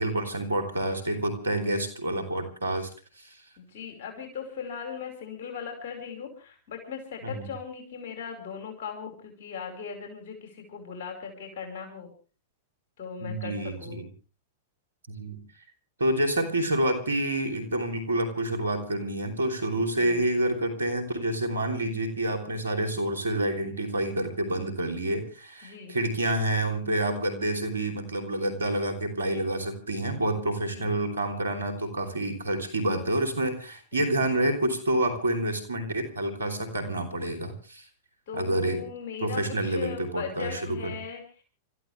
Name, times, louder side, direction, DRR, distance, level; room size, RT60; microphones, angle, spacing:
voice 1, 0.0-2.9 3.2-3.4 7.2-7.5 13.2-14.1 15.1-15.4 16.0-37.8 38.3-38.8 39.2-40.9, right 1 dB, 90° right, 6 dB, 3.3 m, -28 dB
voice 2, 3.6-12.1 13.0-14.0 19.7-20.2 25.6-26.0 30.8-30.9 33.9-34.3 38.3-41.4, left 6 dB, 60° left, 3 dB, 5.2 m, -39 dB
28.5 x 14.0 x 3.4 m, 0.35 s
hypercardioid pair, 105°, 0 cm